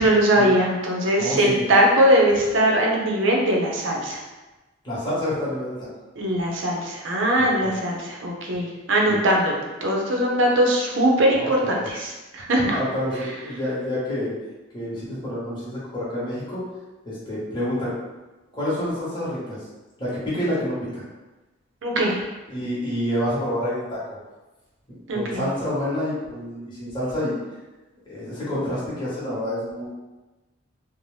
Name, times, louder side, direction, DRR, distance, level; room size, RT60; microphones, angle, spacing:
voice 1, 0.0-4.2 6.2-12.8 21.8-22.2 25.1-25.4, right 1 dB, 70° right, -1 dB, 0.6 m, -21 dB
voice 2, 1.2-1.6 4.8-5.9 7.4-7.7 9.1-9.2 11.3-11.9 12.7-14.3 14.7-16.6 17.0-17.9 18.5-19.6 20.0-21.0 22.5-24.2 24.9-27.4 28.1-29.9, left 1 dB, 25° left, -9 dB, 1.0 m, -28 dB
2.6 x 2.0 x 3.2 m, 1.1 s
head